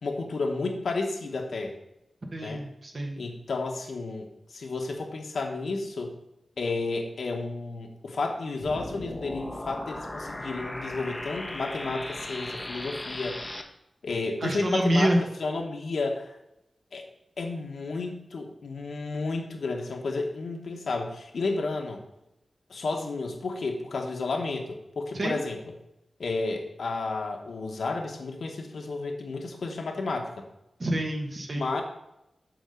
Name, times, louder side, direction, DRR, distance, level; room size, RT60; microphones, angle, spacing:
voice 1, 0.0-1.8 2.4-2.6 3.2-6.1 6.6-13.4 14.0-15.1 15.4-16.3 16.9-17.1 17.4-22.0 22.7-25.6 26.2-30.4 31.6-31.8, left 3 dB, 85° left, 2 dB, 1.2 m, -32 dB
voice 2, 2.3-3.2 14.4-15.2 25.1-25.4 30.8-31.7, right 1 dB, 45° right, 2 dB, 1.3 m, -27 dB
sound 1, 8.6-13.6, left 1 dB, 20° left, 0.7 m, -37 dB
7.2 x 4.2 x 6.5 m, 0.86 s
wide cardioid pair, 100°, 0 cm